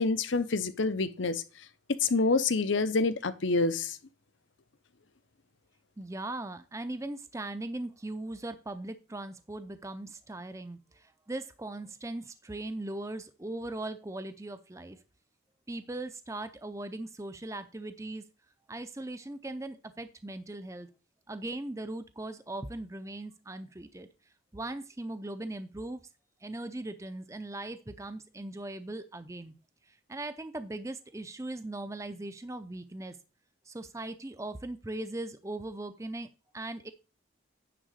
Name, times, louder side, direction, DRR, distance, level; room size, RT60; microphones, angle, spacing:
voice 1, 0.0-1.4 2.0-4.0, left 3 dB, 70° left, 0.8 m, -27 dB
voice 2, 6.0-15.0 15.7-18.2 18.7-20.9 21.3-24.1 24.5-26.0 26.4-29.5 29.9-33.2 33.7-36.3 36.5-36.9, right 2 dB, 15° right, 0.5 m, -39 dB
10.0 x 3.7 x 6.5 m
head